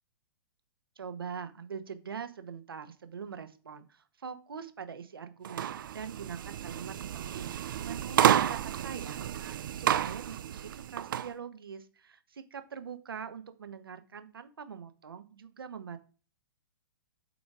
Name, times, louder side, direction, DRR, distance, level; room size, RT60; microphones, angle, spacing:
voice 1, 1.0-7.5 7.8-16.0, right 7 dB, 85° right, 10 dB, 1.0 m, -43 dB
sound 1, 5.4-11.3, right 10 dB, 65° right, 0.5 m, -30 dB
8.1 x 4.1 x 4.8 m, 0.37 s
hypercardioid pair, 135°, 12 cm